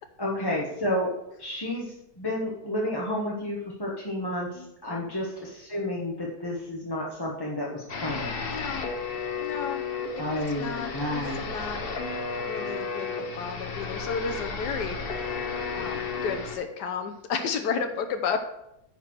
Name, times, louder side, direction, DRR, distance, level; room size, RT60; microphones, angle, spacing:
voice 1, 0.2-1.1 1.4-8.3 10.2-11.5, left 1 dB, 15° left, -4 dB, 1.0 m, -31 dB
voice 2, 4.5-5.1 8.4-8.9 9.4-11.8 12.4-13.1 13.4-15.4 15.7-18.4, left 6 dB, 80° left, 6 dB, 1.3 m, -33 dB
sound 1, 7.9-16.6, left 4 dB, 40° left, 1.0 m, -33 dB
10.0 x 4.4 x 6.1 m, 0.83 s
omnidirectional pair, 1.8 m